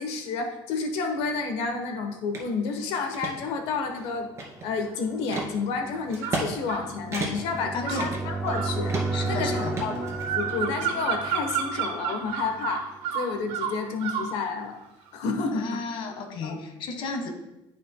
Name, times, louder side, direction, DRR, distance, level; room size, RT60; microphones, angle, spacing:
voice 1, 0.0-4.3 4.6-9.0 9.3-10.0 10.3-12.9 13.1-14.8 15.1-15.8 16.4-16.6, left 4 dB, 75° left, 5 dB, 1.0 m, -30 dB
sound 1, 2.2-13.0, right 3 dB, 10° right, 0.4 m, -35 dB
sound 2, 2.3-2.5 2.9-3.3 3.9-4.8 5.3-5.5 6.1-6.5 6.7-6.8 7.1-7.6 8.0-8.6 8.9-9.3 9.8-10.6, right 3 dB, 30° right, 2.2 m, -32 dB
sound 3, 6.2-6.9 7.8-14.4, right 7 dB, 80° right, 1.0 m, -31 dB
voice 2, 7.7-8.1 9.1-9.7 15.5-17.3, left 3 dB, 60° left, 4 dB, 1.5 m, -33 dB
13.0 x 5.0 x 2.2 m, 0.92 s
cardioid pair, 125°, 10 cm